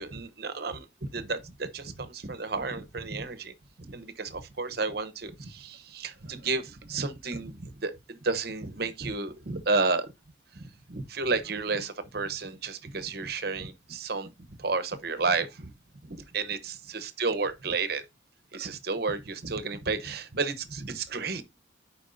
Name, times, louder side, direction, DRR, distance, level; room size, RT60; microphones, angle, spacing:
voice 1, 0.0-10.1 10.5-14.3 14.6-15.7 16.0-18.0 18.5-21.4, right 4 dB, 50° right, 0.9 m, -32 dB
10.5 x 4.6 x 2.6 m
head